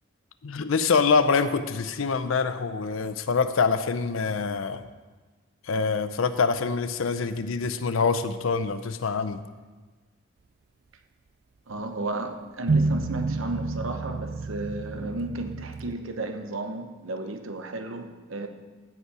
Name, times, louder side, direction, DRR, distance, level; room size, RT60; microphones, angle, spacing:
voice 1, 0.4-4.8 5.7-9.4, left 5 dB, 85° left, 0.6 m, -25 dB
voice 2, 11.7-18.5, right 2 dB, 85° right, 0.9 m, -33 dB
sound 1, 12.7-16.0, right 3 dB, 50° right, 0.4 m, -29 dB
15.0 x 5.5 x 4.8 m
head